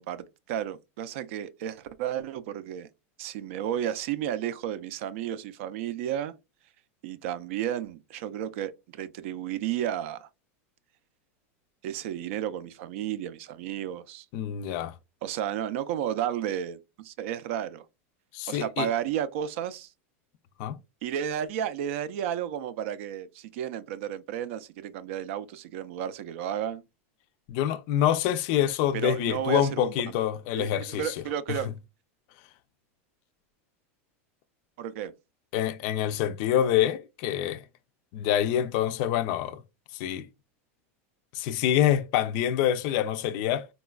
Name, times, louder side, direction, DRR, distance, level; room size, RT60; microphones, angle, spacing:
voice 1, 0.0-2.9 3.2-6.3 7.0-10.3 11.8-14.3 15.2-17.9 18.5-19.9 21.0-26.8 28.9-30.1 30.5-31.7 34.8-35.1, right 10 dB, 65° right, 0.4 m, -32 dB
voice 2, 14.3-14.9 18.3-18.9 20.6-20.8 27.5-31.1 35.5-37.6 38.1-39.6 39.9-40.3 41.3-43.7, left 11 dB, 50° left, 0.3 m, -26 dB
4.0 x 2.2 x 2.3 m
supercardioid pair, 145°, 8 cm